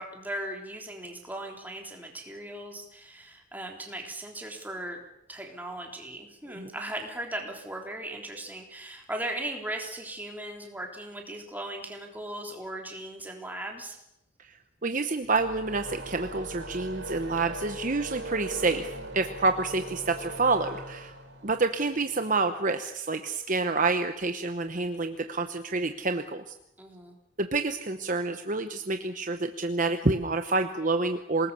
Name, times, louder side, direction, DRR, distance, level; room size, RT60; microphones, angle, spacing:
voice 1, 0.0-14.0 26.8-27.1, right 1 dB, 10° right, 1 dB, 3.5 m, -38 dB
voice 2, 14.8-21.1 21.4-26.5 27.4-31.5, right 3 dB, 40° right, 7 dB, 1.0 m, -28 dB
sound 1, 15.2-22.6, right 1 dB, 60° right, 5.7 m, -40 dB
27.0 x 19.5 x 6.9 m, 0.81 s
head